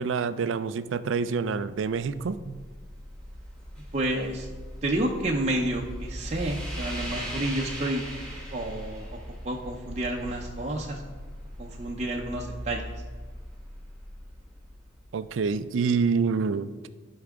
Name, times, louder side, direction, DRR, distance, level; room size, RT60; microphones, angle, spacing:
voice 1, 0.0-2.6 15.1-16.7, right 5 dB, 80° right, 14 dB, 0.4 m, -27 dB
sound 1, 1.8-15.7, equal, 5° left, 1.9 m, -40 dB
voice 2, 3.9-4.5 4.8-8.1 8.5-9.2 9.4-11.1 11.6-12.9, right 1 dB, 35° right, -1 dB, 0.6 m, -30 dB
12.0 x 4.8 x 3.6 m, 1.4 s
head